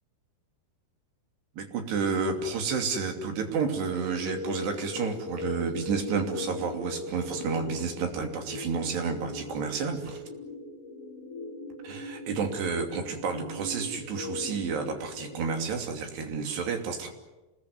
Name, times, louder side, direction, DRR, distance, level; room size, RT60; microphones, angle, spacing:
voice 1, 1.6-10.2 11.8-17.1, right 5 dB, 65° right, 4 dB, 4.9 m, -30 dB
sound 1, 3.5-15.4, left 2 dB, 70° left, 3.9 m, -40 dB
28.0 x 21.0 x 9.7 m, 1.1 s
omnidirectional pair, 5.3 m